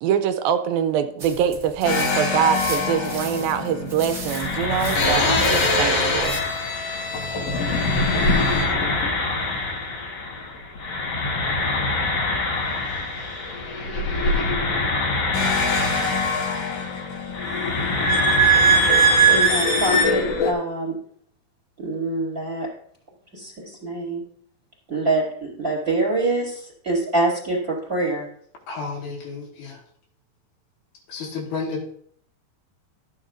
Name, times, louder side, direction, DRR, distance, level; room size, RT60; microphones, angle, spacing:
voice 1, 0.0-6.4, right 8 dB, 80° right, 9 dB, 2.3 m, -24 dB
sound 1, 1.2-6.4, right 3 dB, 40° right, 1.0 m, -36 dB
sound 2, 1.8-10.5 10.8-20.5, equal, 50° left, 2.1 m, -22 dB
voice 2, 19.3-20.9 21.8-22.7 23.3-24.2 24.9-28.3, right 2 dB, 15° right, -4 dB, 3.6 m, -25 dB
voice 3, 28.7-29.8 31.1-31.8, left 4 dB, 75° left, -1 dB, 3.4 m, -31 dB
14.0 x 8.8 x 2.6 m, 0.63 s
omnidirectional pair, 4.5 m